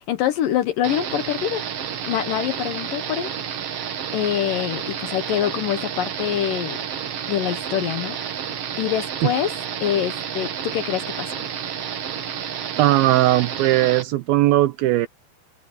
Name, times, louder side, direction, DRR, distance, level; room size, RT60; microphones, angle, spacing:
voice 1, 0.0-1.6 2.0-3.3 4.1-6.8 7.3-8.3 8.8-9.5 9.8-11.5, left 11 dB, 70° left, 2.3 m, -25 dB
sound 1, 0.8-14.0, right 8 dB, 60° right, 1.7 m, -30 dB
voice 2, 12.8-15.1, right 15 dB, 80° right, 2.3 m, -18 dB
omnidirectional pair, 4.7 m